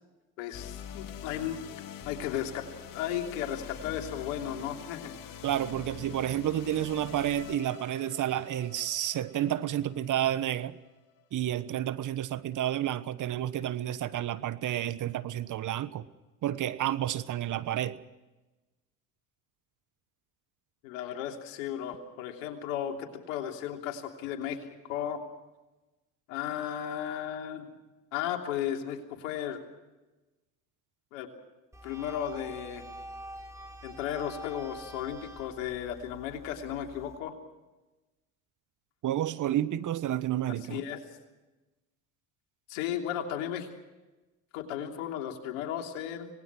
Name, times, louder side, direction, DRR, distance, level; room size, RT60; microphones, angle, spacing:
voice 1, 0.4-2.6 2.9-5.1 20.8-25.2 26.3-27.7 28.1-29.6 31.1-31.3 31.8-32.9 33.8-37.3 40.7-41.0 42.7-43.7 44.5-46.3, left 10 dB, 80° left, 3 dB, 3.2 m, -35 dB
sound 1, 0.5-10.9, left 9 dB, 60° left, 2.2 m, -45 dB
voice 2, 5.4-10.8 11.3-16.0 16.4-18.0 39.0-40.8, right 12 dB, 50° right, 15 dB, 1.3 m, -30 dB
sound 2, 31.7-37.2, right 1 dB, 5° right, 3.9 m, -46 dB
25.5 x 20.0 x 6.2 m, 1.1 s
hypercardioid pair, 70°, 39 cm